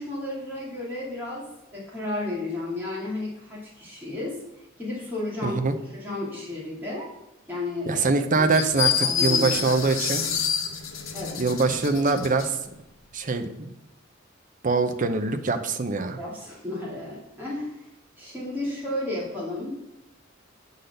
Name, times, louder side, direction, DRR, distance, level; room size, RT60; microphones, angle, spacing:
voice 1, 0.0-1.5 1.7-4.4 4.8-5.6 5.9-7.1 7.5-8.0 8.4-8.5 9.0-9.7 11.1-11.4 16.2-17.8 18.2-19.8, left 2 dB, 10° right, -6 dB, 2.5 m, -33 dB
voice 2, 5.4-5.7 7.9-10.2 11.4-12.6 13.1-13.7 14.6-16.2, right 3 dB, 40° right, 6 dB, 0.7 m, -24 dB
sound 1, 8.5-12.5, left 7 dB, 75° left, 1.0 m, -27 dB
8.3 x 4.0 x 6.6 m, 0.91 s
head